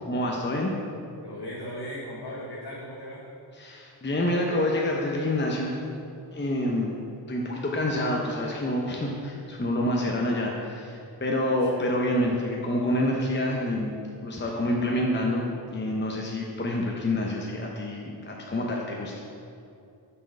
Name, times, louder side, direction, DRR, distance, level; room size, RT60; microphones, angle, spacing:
voice 1, 0.1-0.7 3.6-5.8 6.3-6.9 7.3-13.9 14.2-15.5 15.7-19.2, left 1 dB, 25° left, -1 dB, 0.8 m, -27 dB
voice 2, 1.2-3.3 11.7-11.9, equal, 60° left, -4 dB, 1.1 m, -37 dB
5.9 x 4.7 x 5.3 m, 2.5 s
cardioid pair, 50°, 45 cm